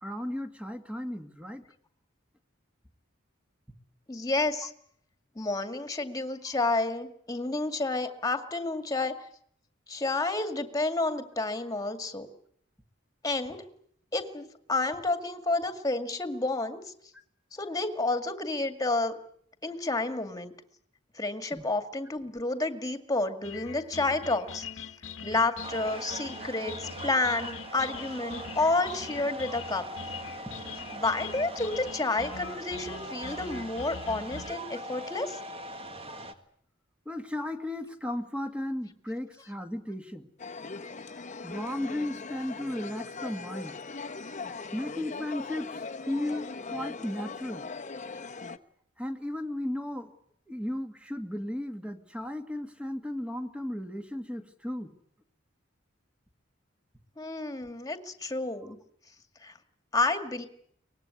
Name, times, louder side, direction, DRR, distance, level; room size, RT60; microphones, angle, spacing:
voice 1, 0.0-1.6 21.5-21.6 29.5-29.6 37.1-40.3 41.4-43.8 44.7-47.7 49.0-50.1 50.5-54.9, left 1 dB, 5° right, 7 dB, 1.9 m, -35 dB
voice 2, 4.1-4.7 5.4-9.2 9.9-12.3 13.2-13.6 14.1-16.8 17.5-19.2 19.6-20.5 21.2-24.7 25.2-29.8 30.9-35.4 57.2-58.8 59.4-59.5 59.9-60.5, left 2 dB, 20° left, 9 dB, 2.1 m, -30 dB
sound 1, 23.4-34.5, left 6 dB, 75° left, 1.4 m, -43 dB
sound 2, 25.6-36.3, right 1 dB, 30° right, 1.9 m, -42 dB
sound 3, 40.4-48.6, left 4 dB, 40° left, 1.1 m, -40 dB
23.5 x 19.5 x 9.8 m, 0.67 s
head